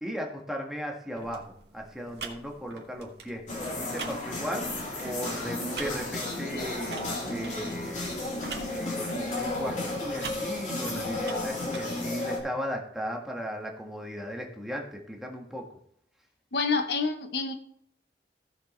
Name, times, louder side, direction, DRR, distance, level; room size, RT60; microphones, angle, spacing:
voice 1, 0.0-8.2 8.7-15.7, equal, ahead, 0 dB, 1.6 m, -37 dB
sound 1, 1.2-11.9, right 5 dB, 65° right, 1.7 m, -45 dB
sound 2, 3.5-12.4, left 2 dB, 45° left, 2.9 m, -33 dB
voice 2, 16.5-17.5, left 4 dB, 65° left, 8 dB, 0.9 m, -27 dB
16.5 x 6.6 x 3.2 m, 0.70 s
head